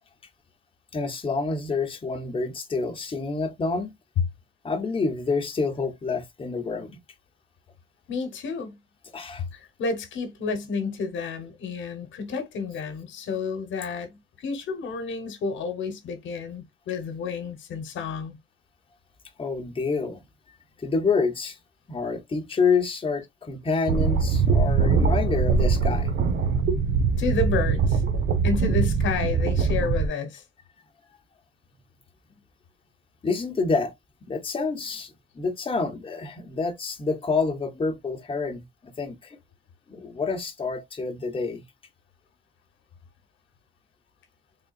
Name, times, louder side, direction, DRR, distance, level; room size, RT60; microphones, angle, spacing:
voice 1, 0.9-3.9 4.6-7.0 9.1-9.4 19.4-20.2 20.8-21.6 21.9-26.1 33.2-33.9 34.3-39.4 39.9-41.6, left 4 dB, 25° left, 1.0 m, -28 dB
voice 2, 8.1-8.8 9.5-18.4 27.2-28.0 28.4-30.4, left 4 dB, 75° left, 1.1 m, -30 dB
sound 1, 23.9-30.1, right 5 dB, 60° right, 1.1 m, -22 dB
3.7 x 3.6 x 2.4 m
cardioid pair, 90°, 20 cm